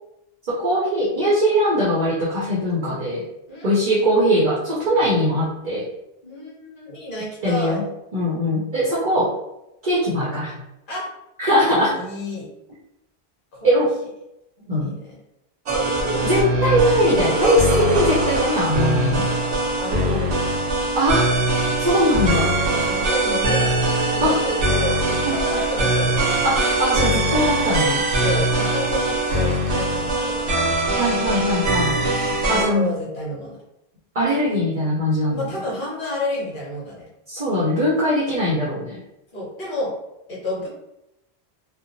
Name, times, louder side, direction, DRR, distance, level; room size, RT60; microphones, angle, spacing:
voice 1, 0.5-3.2 3.6-5.9 7.4-7.8 8.1-9.3 9.8-10.5 11.4-12.0 13.6-13.9 14.7-14.9 16.1-19.3 21.0-21.3 21.8-22.5 24.2-24.4 25.3-25.6 26.4-28.0 30.9-32.0 32.5-33.0 34.1-35.5 37.3-39.0, equal, 45° right, -6 dB, 0.7 m, -21 dB
voice 2, 3.5-4.0 6.2-7.8 10.9-11.1 11.9-12.5 13.5-13.9 14.6-15.2 19.8-20.3 22.6-23.7 24.0-26.5 28.2-30.7 32.5-33.6 35.3-37.1 39.3-39.9 40.3-40.7, left 1 dB, 55° left, -5 dB, 1.1 m, -30 dB
sound 1, 15.7-32.6, right 1 dB, 90° right, 1.0 m, -21 dB
2.8 x 2.1 x 2.5 m, 0.86 s
omnidirectional pair, 1.1 m